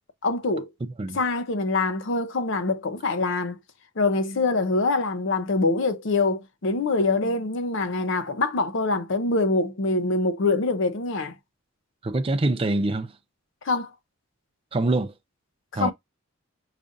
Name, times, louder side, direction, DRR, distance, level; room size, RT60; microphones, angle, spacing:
voice 1, 0.2-0.7 1.1-3.6 4.0-11.3 13.6-13.9 15.7-15.9, left 3 dB, 60° left, 0.6 m, -24 dB
voice 2, 12.0-13.1 14.7-15.1 15.7-15.9, right 2 dB, 25° right, 0.4 m, -24 dB
5.0 x 2.4 x 2.5 m
head